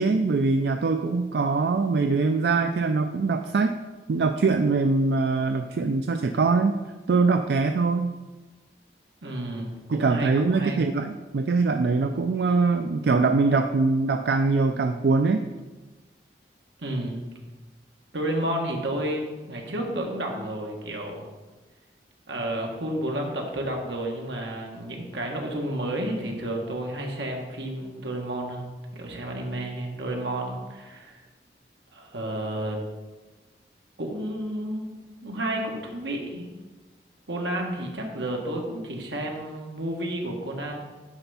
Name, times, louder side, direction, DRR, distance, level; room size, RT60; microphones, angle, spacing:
voice 1, 0.0-3.8 4.1-6.8 7.1-8.1 9.9-15.5, right 4 dB, 70° right, 7 dB, 0.4 m, -23 dB
voice 2, 9.2-10.8 16.8-17.3 18.1-21.3 22.3-31.2 31.9-32.8 34.0-36.5 37.3-40.8, right 1 dB, 90° right, 1 dB, 1.4 m, -31 dB
9.7 x 3.5 x 5.6 m, 1.2 s
head